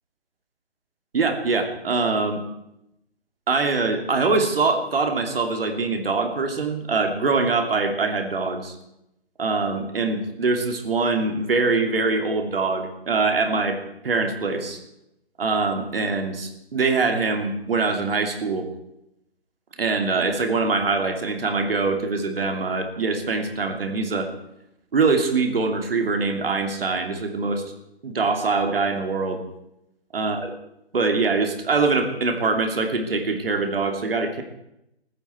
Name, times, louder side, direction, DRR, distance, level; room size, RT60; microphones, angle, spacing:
voice 1, 1.1-2.4 3.5-8.7 9.4-14.8 15.4-18.7 19.8-24.3 24.9-27.6 28.0-29.4 30.1-30.5 30.9-34.4, right 4 dB, 60° right, 5 dB, 2.9 m, -23 dB
22.0 x 14.5 x 4.5 m, 0.82 s
figure-of-eight pair, 145°, 32 cm